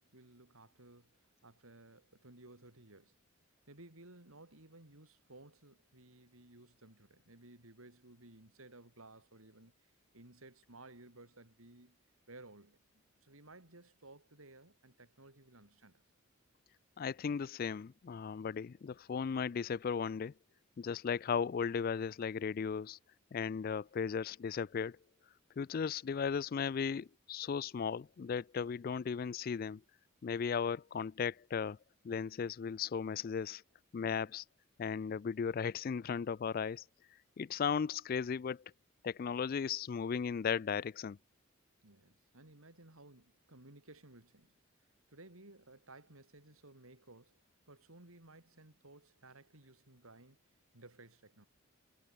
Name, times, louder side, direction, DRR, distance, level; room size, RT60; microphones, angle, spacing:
voice 1, 0.0-3.2 3.7-12.0 12.3-16.0 34.0-34.3 41.8-44.5 45.1-50.4 50.7-51.5, right 2 dB, 80° right, 4.1 m, -58 dB
voice 2, 17.0-20.3 20.8-23.0 23.3-25.0 25.6-29.8 30.2-31.8 32.0-33.6 33.9-34.4 34.8-36.8 37.4-38.6 39.0-41.2, left 6 dB, 45° left, 0.3 m, -36 dB
head